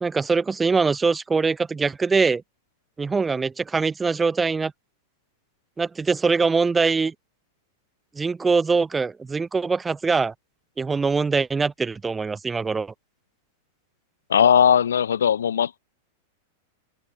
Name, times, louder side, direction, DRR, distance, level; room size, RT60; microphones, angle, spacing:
voice 1, 0.0-2.4 3.0-4.7 5.8-7.1 8.2-10.3 10.8-12.9, right 4 dB, 15° right, 1.0 m, -23 dB
voice 2, 14.3-15.8, left 8 dB, 80° left, 4.3 m, -18 dB
hypercardioid pair, 105°, 0 cm